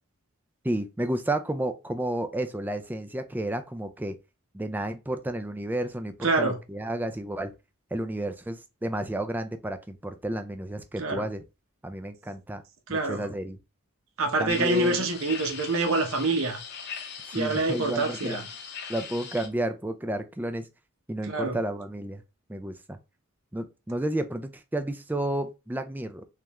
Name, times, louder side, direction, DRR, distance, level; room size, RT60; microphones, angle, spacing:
voice 1, 0.6-4.2 4.5-7.5 7.9-11.4 11.8-12.6 12.9-13.6 14.4-15.1 17.3-18.4 18.9-20.7 21.1-22.2 22.5-23.0 23.5-26.2, right 1 dB, 10° right, 0.3 m, -31 dB
voice 2, 6.2-6.6 11.0-11.2 12.9-13.2 14.2-16.6 17.3-18.4 21.3-21.6, right 2 dB, 70° right, 0.8 m, -26 dB
sound 1, 14.5-19.5, left 6 dB, 50° left, 0.7 m, -40 dB
3.5 x 3.3 x 2.9 m
head